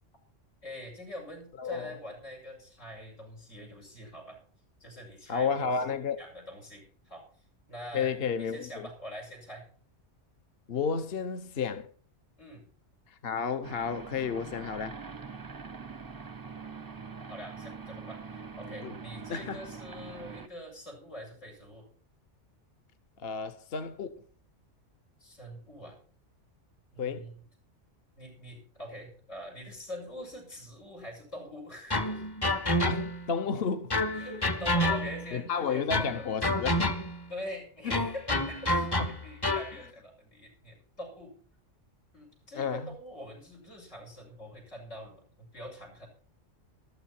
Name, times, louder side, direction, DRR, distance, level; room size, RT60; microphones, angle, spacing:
voice 1, 0.6-4.4 4.8-5.8 6.2-9.7 12.4-12.7 17.0-21.9 25.2-26.0 26.9-27.4 28.2-32.3 34.1-36.3 37.3-41.3 42.1-46.1, equal, 90° left, 6.6 m, -44 dB
voice 2, 1.6-1.9 5.3-6.2 7.9-8.9 10.7-11.9 13.1-15.0 18.8-18.9 19.3-19.6 23.2-24.2 27.0-27.3 32.8-33.9 35.3-37.0 37.9-38.0 39.0-39.2 42.6-42.9, left 6 dB, 55° left, 1.0 m, -32 dB
sound 1, 13.6-20.5, right 5 dB, 25° right, 0.5 m, -43 dB
sound 2, 31.9-33.3 33.9-35.4 35.9-37.3 37.9-39.8, left 1 dB, 25° left, 0.8 m, -29 dB
14.0 x 13.0 x 4.4 m
omnidirectional pair, 1.2 m